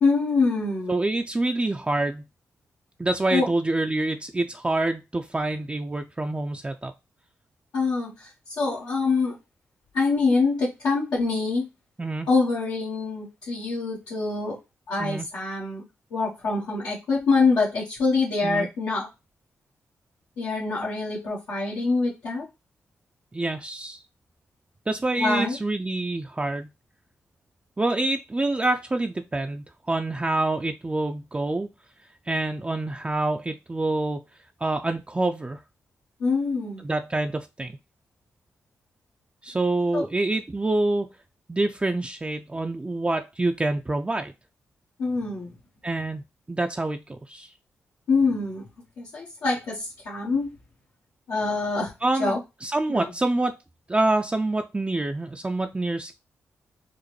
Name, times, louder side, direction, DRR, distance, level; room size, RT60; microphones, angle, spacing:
voice 1, 0.0-0.9 3.3-3.5 7.7-8.3 8.6-9.4 9.9-11.7 12.3-14.6 14.9-15.8 16.1-19.1 20.4-22.4 25.1-25.6 36.2-36.8 39.9-40.1 45.0-45.5 48.1-48.6 49.0-50.5 51.3-51.9 52.2-52.4 52.9-53.1, left 4 dB, 85° left, -7 dB, 1.1 m, -25 dB
voice 2, 0.9-2.2 3.0-6.9 12.0-12.3 15.0-15.3 18.4-18.7 23.3-24.0 24.9-26.7 27.8-31.7 32.3-34.2 34.6-35.6 36.8-37.8 39.4-41.1 41.5-44.3 45.8-46.2 46.5-47.5 52.0-52.3 52.6-53.6 53.9-56.2, right 2 dB, 20° right, 5 dB, 0.4 m, -26 dB
4.9 x 2.0 x 3.1 m, 0.25 s
supercardioid pair, 45°, 6 cm